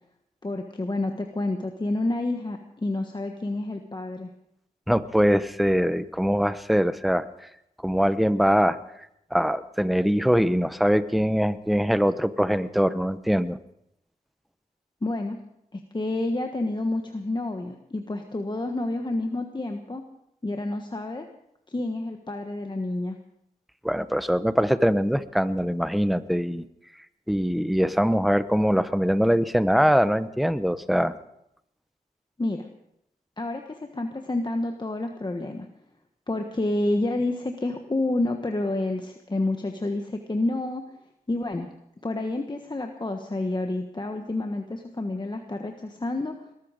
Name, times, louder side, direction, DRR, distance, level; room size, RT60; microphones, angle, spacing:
voice 1, 0.4-4.3 15.0-15.4 15.7-20.0 20.4-21.2 21.7-23.2 32.4-32.7 33.4-35.7 36.3-40.8 41.3-41.7 42.0-46.3, left 2 dB, 30° left, 4 dB, 1.4 m, -29 dB
voice 2, 4.9-7.3 7.8-8.8 9.3-13.6 23.8-26.6 27.3-31.1, equal, ahead, 13 dB, 0.9 m, -22 dB
20.5 x 13.5 x 5.1 m, 0.78 s
wide cardioid pair, 70°, 15 cm